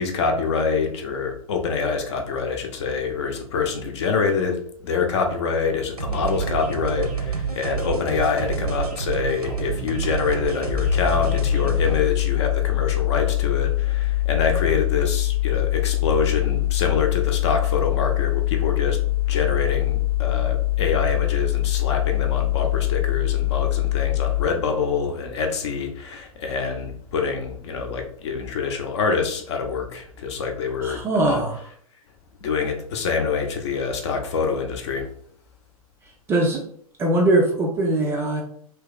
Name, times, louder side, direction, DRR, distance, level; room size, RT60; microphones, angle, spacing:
voice 1, 0.0-19.0 19.3-31.4 32.4-35.1, left 5 dB, 45° left, 4 dB, 0.7 m, -25 dB
sound 1, 6.0-12.0, right 5 dB, 80° right, 0.7 m, -28 dB
sound 2, 10.7-24.5, left 18 dB, 85° left, 0.6 m, -23 dB
voice 2, 30.8-31.6 36.3-36.6 37.0-38.4, right 2 dB, 15° right, 1 dB, 0.4 m, -21 dB
3.0 x 2.9 x 3.6 m, 0.63 s
figure-of-eight pair, 110°, 19 cm